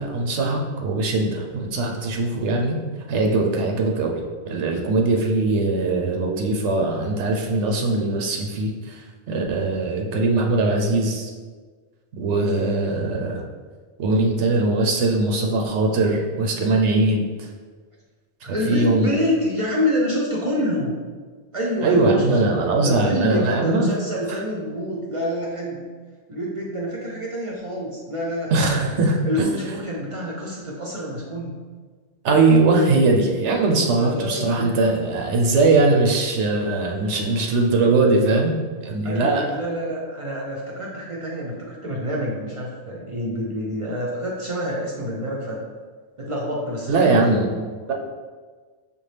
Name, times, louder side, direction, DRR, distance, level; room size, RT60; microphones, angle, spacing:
voice 1, 0.0-2.8 3.1-4.2 4.5-11.3 12.2-13.4 14.0-17.5 18.5-19.1 21.8-23.9 24.3-24.4 28.5-29.5 32.2-38.5 38.8-39.4 46.9-47.5, right 2 dB, 85° right, 1 dB, 0.9 m, -21 dB
voice 2, 12.4-12.7 18.5-21.0 21.5-25.8 26.3-28.9 29.3-31.5 34.0-34.7 39.0-45.6 46.2-47.6, equal, 40° right, -4 dB, 0.5 m, -27 dB
5.3 x 2.3 x 3.2 m, 1.5 s
omnidirectional pair, 1.1 m